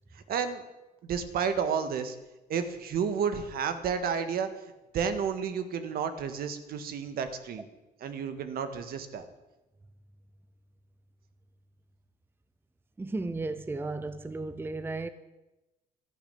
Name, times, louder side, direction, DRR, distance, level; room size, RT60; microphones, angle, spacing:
voice 1, 0.3-0.6 1.0-2.2 2.5-4.5 4.9-7.6 8.0-9.3, right 6 dB, 65° right, 1.7 m, -31 dB
voice 2, 13.0-15.1, right 3 dB, 15° right, 0.7 m, -34 dB
12.5 x 11.5 x 8.5 m
cardioid pair, 110°, 17 cm